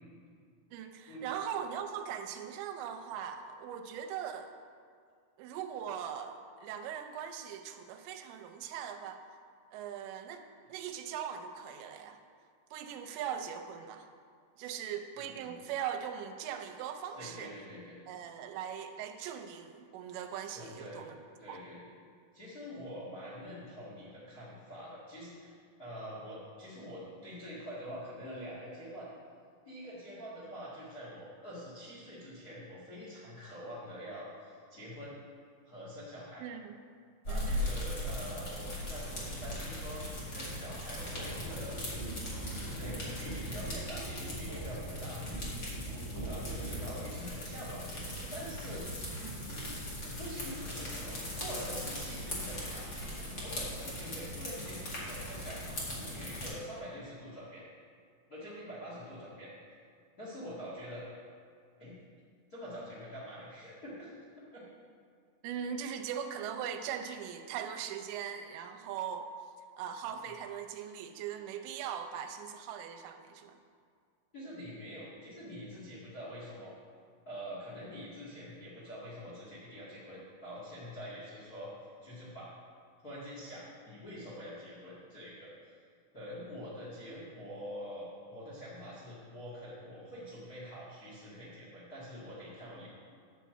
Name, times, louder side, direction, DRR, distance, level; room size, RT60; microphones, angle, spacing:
voice 1, 0.7-4.5 5.4-9.2 9.7-10.4 10.7-12.2 12.7-14.1 14.6-17.5 18.1-21.2 21.5-21.6 36.4-36.8 37.3-37.7 49.2-49.4 65.4-69.3 69.8-73.6, right 8 dB, 80° right, 6 dB, 2.8 m, -40 dB
voice 2, 15.1-15.5 17.0-18.0 20.5-21.0 21.4-21.8 22.3-29.1 29.6-35.1 35.6-36.5 37.2-40.0 40.3-41.8 42.5-46.0 46.2-49.1 49.5-49.8 50.0-57.6 58.3-59.8 60.2-61.1 61.8-61.9 62.5-64.1 64.5-64.7 74.3-76.7 77.2-81.7 82.0-82.5 83.0-85.8 86.1-92.9, equal, 75° left, -7 dB, 0.8 m, -45 dB
sound 1, 37.2-56.5, left 1 dB, 55° left, 1.1 m, -39 dB
sound 2, 40.9-47.1, right 1 dB, 20° left, 0.4 m, -42 dB
10.0 x 4.6 x 7.4 m, 2.1 s
omnidirectional pair, 5.2 m